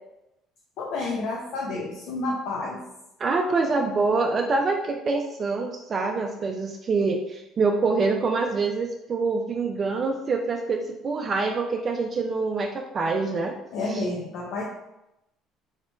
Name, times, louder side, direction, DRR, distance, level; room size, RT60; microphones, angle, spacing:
voice 1, 0.8-2.8 13.7-14.6, left 2 dB, 70° left, -2 dB, 0.5 m, -30 dB
voice 2, 3.2-13.6 13.9-14.0, right 4 dB, 40° right, 2 dB, 0.4 m, -25 dB
2.9 x 2.8 x 3.3 m, 0.89 s
supercardioid pair, 80°, 0 cm